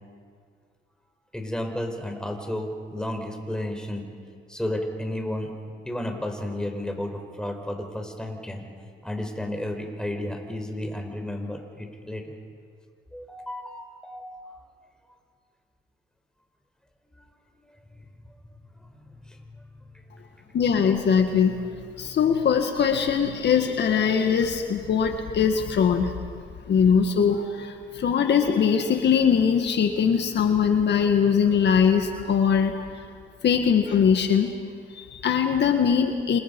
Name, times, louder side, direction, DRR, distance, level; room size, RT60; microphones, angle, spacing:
voice 1, 1.3-4.1 4.5-5.5 5.8-8.7 9.0-12.4 13.1-14.4 19.0-19.4, left 1 dB, 5° left, 3 dB, 4.7 m, -32 dB
voice 2, 20.5-21.7 22.0-26.1 26.7-32.8 33.4-34.5 34.9-36.4, left 7 dB, 60° left, 5 dB, 1.8 m, -21 dB
27.5 x 27.5 x 5.5 m, 2.1 s
cardioid pair, 90°, 20 cm